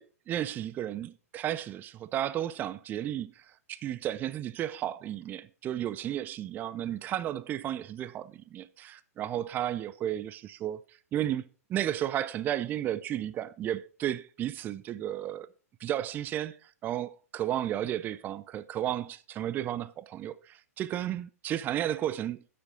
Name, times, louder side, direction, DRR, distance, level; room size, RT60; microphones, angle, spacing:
voice 1, 0.0-10.8 11.1-11.4 11.7-15.5 15.8-22.5, right 11 dB, 20° right, 0.4 m, -33 dB
12.5 x 7.6 x 3.8 m
figure-of-eight pair, 105°, 8 cm